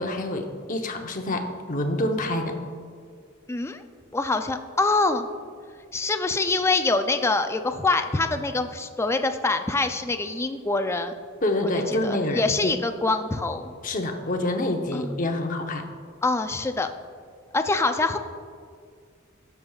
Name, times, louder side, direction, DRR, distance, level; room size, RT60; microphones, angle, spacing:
voice 1, 0.0-2.6 11.4-12.7 13.8-15.9, left 1 dB, 40° left, 4 dB, 0.8 m, -27 dB
voice 2, 3.5-3.8 4.1-5.3 5.9-11.1 11.9-13.7 14.9-15.1 16.2-16.9 17.5-18.2, left 3 dB, 15° left, 7 dB, 0.4 m, -25 dB
17.0 x 6.9 x 2.4 m, 2.1 s
head